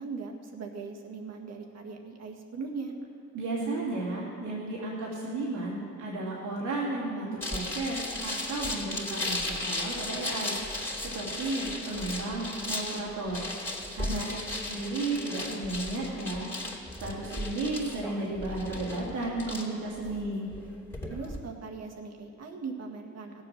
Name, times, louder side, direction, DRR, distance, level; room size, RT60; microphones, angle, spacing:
voice 1, 0.0-2.9 14.1-14.4 21.1-23.3, right 4 dB, 60° right, 1 dB, 1.8 m, -39 dB
voice 2, 3.3-10.6 11.0-13.4 13.9-14.4 14.7-16.5 17.0-20.5, right 2 dB, 90° right, -5 dB, 2.5 m, -33 dB
sound 1, 7.4-21.4, left 2 dB, 10° left, 2.7 m, -36 dB
17.0 x 7.6 x 6.5 m, 2.4 s
cardioid pair, 90°, 30 cm